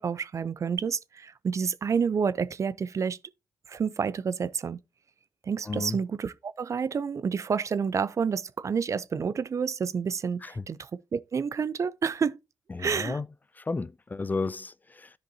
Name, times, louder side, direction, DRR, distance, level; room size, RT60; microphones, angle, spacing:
voice 1, 0.0-3.2 3.7-4.8 5.4-12.4 12.8-13.2, right 6 dB, 50° right, 0.5 m, -29 dB
voice 2, 5.7-6.0 10.4-10.6 12.7-13.2 13.6-15.1, left 3 dB, 25° left, 0.4 m, -33 dB
12.5 x 5.1 x 2.7 m
supercardioid pair, 45°, 7 cm